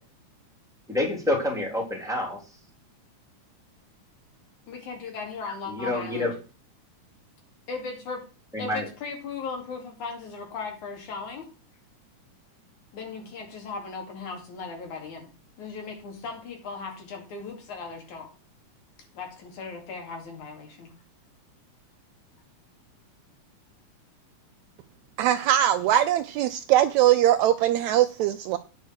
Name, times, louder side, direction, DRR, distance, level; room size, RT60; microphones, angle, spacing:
voice 1, 0.9-2.4 5.7-6.3 8.5-8.9, left 2 dB, ahead, 3.2 m, -27 dB
voice 2, 4.7-6.3 7.7-8.2 8.6-11.5 12.9-15.3 15.6-18.3 19.1-20.9, left 4 dB, 70° left, 3.8 m, -37 dB
voice 3, 25.2-28.6, right 12 dB, 80° right, 1.7 m, -21 dB
9.4 x 5.2 x 6.4 m
omnidirectional pair, 3.6 m